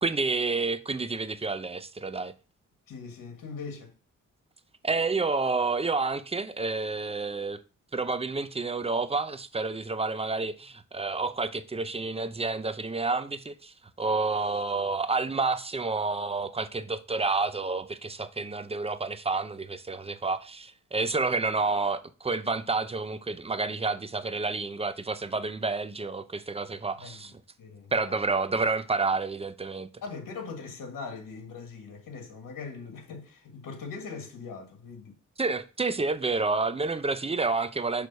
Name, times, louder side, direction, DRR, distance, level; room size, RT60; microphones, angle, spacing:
voice 1, 0.0-2.3 4.8-7.6 7.9-27.3 27.9-29.9 35.4-38.1, right 3 dB, 20° right, 0.6 m, -29 dB
voice 2, 2.9-4.0 26.9-27.3 27.6-28.2 30.0-35.2, left 5 dB, 75° left, 1.6 m, -41 dB
6.1 x 3.4 x 5.2 m
cardioid pair, 80°, 32 cm